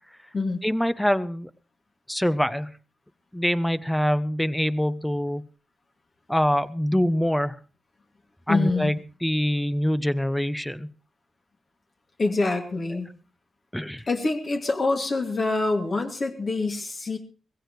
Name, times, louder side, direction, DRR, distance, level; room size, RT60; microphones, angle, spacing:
voice 1, 0.6-1.5 2.1-2.7 3.3-5.5 6.3-7.6 8.5-10.9 13.7-14.0, equal, 5° left, 14 dB, 0.7 m, -24 dB
voice 2, 8.5-8.9 12.2-13.1 14.1-17.2, left 3 dB, 50° left, 3 dB, 2.4 m, -25 dB
20.5 x 16.0 x 3.2 m, 0.37 s
cardioid pair, 70°, 0 cm